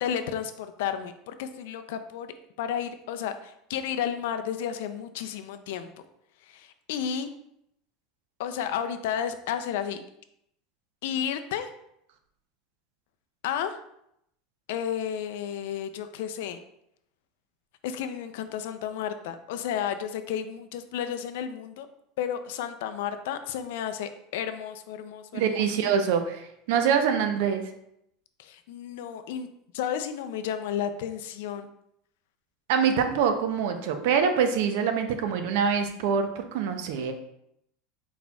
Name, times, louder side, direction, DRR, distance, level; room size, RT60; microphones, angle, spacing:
voice 1, 0.0-5.9 6.4-7.3 8.4-10.0 11.0-11.7 13.4-13.8 14.7-16.6 17.8-21.9 22.2-25.6 28.4-29.5 29.7-31.7, left 9 dB, 75° left, 9 dB, 0.4 m, -32 dB
voice 2, 25.3-27.6 32.7-37.1, right 7 dB, 65° right, 7 dB, 0.5 m, -25 dB
4.3 x 4.2 x 2.3 m, 0.76 s
supercardioid pair, 165°, 0 cm